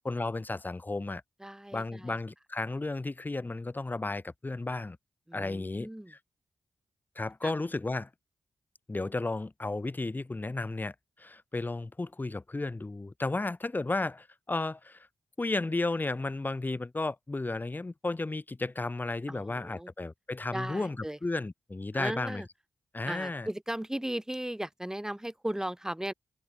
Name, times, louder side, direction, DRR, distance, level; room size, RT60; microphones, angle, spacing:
voice 1, 0.0-1.2 1.7-5.0 5.3-6.2 7.1-8.1 8.9-15.1 15.4-22.4 22.9-23.5, left 2 dB, 30° left, 1.4 m, -33 dB
voice 2, 1.4-2.2 5.3-6.1 7.4-7.5 19.3-19.9 20.5-21.2 21.9-22.5 23.1-26.1, right 1 dB, 10° right, 2.9 m, -36 dB
supercardioid pair, 45°, 7 cm